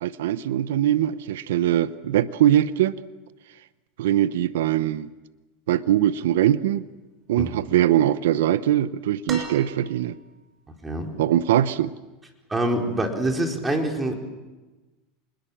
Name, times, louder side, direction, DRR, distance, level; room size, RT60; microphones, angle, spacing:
voice 1, 0.0-3.0 4.0-5.1 5.7-6.8 7.3-10.2 11.2-11.9, right 12 dB, 80° right, 15 dB, 0.8 m, -22 dB
voice 2, 7.4-7.7 10.8-11.1 12.5-14.1, right 1 dB, 15° right, 2 dB, 4.5 m, -25 dB
sound 1, 9.3-10.3 11.8-11.9, right 4 dB, 35° right, 6.4 m, -37 dB
26.5 x 21.0 x 7.4 m, 1.2 s
supercardioid pair, 110°, 0 cm